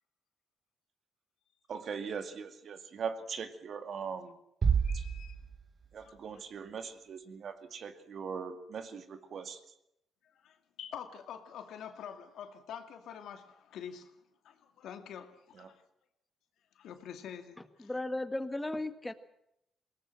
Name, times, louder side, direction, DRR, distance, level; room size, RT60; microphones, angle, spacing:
voice 1, 1.7-4.3 5.9-9.6 15.6-15.7, right 6 dB, 60° right, 9 dB, 2.2 m, -40 dB
sound 1, 4.6-6.1, right 6 dB, 40° right, 0.9 m, -30 dB
voice 2, 4.8-5.4 6.0-6.5 10.3-14.1 14.4-15.8 16.8-17.9, left 8 dB, 75° left, 7 dB, 2.3 m, -46 dB
voice 3, 17.8-19.1, left 2 dB, 10° left, 10 dB, 1.8 m, -35 dB
21.5 x 18.5 x 7.7 m, 0.79 s
cardioid pair, 90°, 0 cm